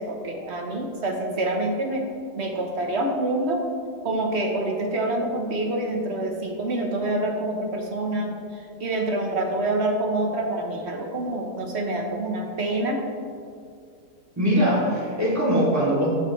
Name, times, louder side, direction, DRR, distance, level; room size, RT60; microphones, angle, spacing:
voice 1, 0.0-2.1 2.3-3.7 4.0-13.0, right 1 dB, 45° right, 2 dB, 1.1 m, -26 dB
voice 2, 14.4-16.2, equal, 10° right, -8 dB, 2.7 m, -21 dB
15.5 x 6.6 x 3.2 m, 2.3 s
omnidirectional pair, 1.7 m